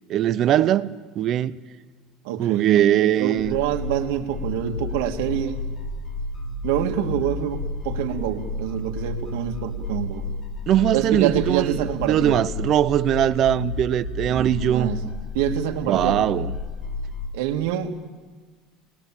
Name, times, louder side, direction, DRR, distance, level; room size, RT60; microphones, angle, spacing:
voice 1, 0.1-0.9 1.2-1.6 2.4-3.6 10.7-14.9 15.9-16.5, right 11 dB, 40° right, 0.7 m, -21 dB
voice 2, 2.2-5.6 6.6-10.3 10.9-12.4 14.2-16.2 17.3-18.1, right 11 dB, 90° right, 2.0 m, -26 dB
sound 1, 3.4-17.3, left 2 dB, 30° left, 3.1 m, -31 dB
28.5 x 20.5 x 7.4 m
cardioid pair, 150°, 0 cm